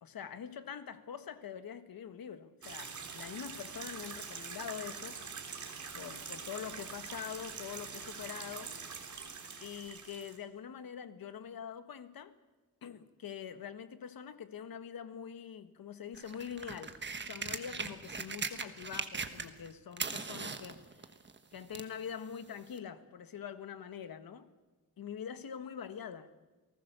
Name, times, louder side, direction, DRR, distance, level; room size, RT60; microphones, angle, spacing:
voice 1, 0.0-5.2 5.9-8.8 9.6-12.3 12.8-16.9 17.2-21.1 21.5-24.5 25.0-26.3, left 8 dB, 70° left, 11 dB, 1.5 m, -44 dB
sound 1, 2.6-10.4, right 5 dB, 50° right, 3.3 m, -44 dB
sound 2, 16.1-19.7 19.9-22.0 22.8-22.9, right 4 dB, 30° right, 1.4 m, -39 dB
29.5 x 19.0 x 6.9 m, 1.2 s
wide cardioid pair, 155°, 37 cm